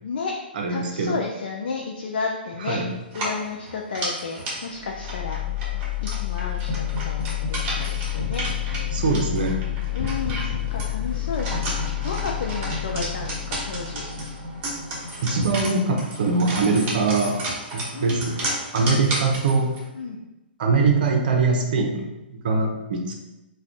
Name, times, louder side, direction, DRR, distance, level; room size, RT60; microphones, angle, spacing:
voice 1, 0.0-0.3 0.7-2.8 3.1-5.4 6.0-8.5 9.9-14.0 17.9-18.5 18.9-19.2 19.9-20.2, left 4 dB, 65° left, 0 dB, 0.4 m, -32 dB
voice 2, 0.6-1.2 2.7-2.9 8.9-9.6 15.2-17.4 17.7-19.7 20.6-22.0 22.3-23.1, right 4 dB, 55° right, 2 dB, 0.6 m, -22 dB
sound 1, 3.1-19.8, right 1 dB, 35° right, 1.1 m, -33 dB
sound 2, 4.8-16.7, left 10 dB, 35° left, 1.2 m, -29 dB
2.4 x 2.3 x 3.4 m, 0.98 s
figure-of-eight pair, 120°, 6 cm